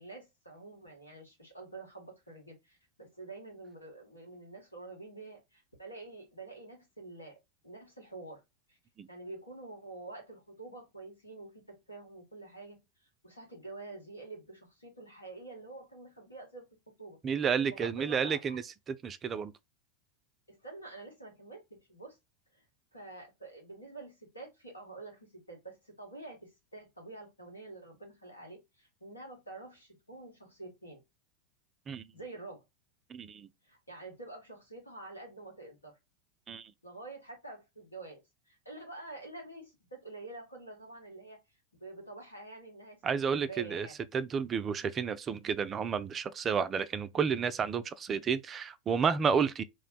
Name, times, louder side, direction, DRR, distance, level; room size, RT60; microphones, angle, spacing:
voice 1, 0.0-7.4 7.6-8.4 8.7-8.8 9.1-16.6 17.0-17.2 17.7-18.6 20.5-22.2 22.5-22.6 22.9-31.0 32.1-32.6 33.6-36.0 36.8-41.4 41.8-44.0, right 2 dB, 85° left, 1.3 m, -48 dB
voice 2, 17.2-18.6 19.0-19.5 31.9-32.1 33.1-33.5 36.5-36.7 43.0-43.9 44.1-49.6, right 6 dB, 25° right, 0.3 m, -31 dB
2.4 x 2.1 x 3.8 m
figure-of-eight pair, 90°, 0 cm